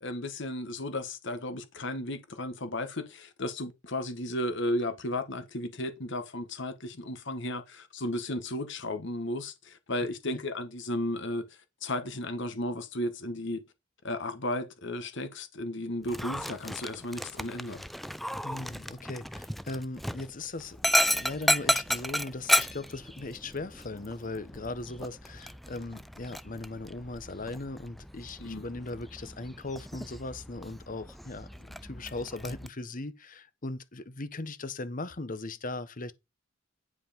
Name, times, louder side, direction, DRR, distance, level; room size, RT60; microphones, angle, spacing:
voice 1, 0.0-11.4 11.8-13.6 14.0-17.9 28.4-28.7, left 1 dB, 60° left, 1.6 m, -34 dB
Dog, 16.0-32.7, equal, ahead, 0.4 m, -33 dB
voice 2, 18.4-36.1, left 2 dB, 40° left, 1.0 m, -39 dB
9.7 x 5.1 x 5.2 m
head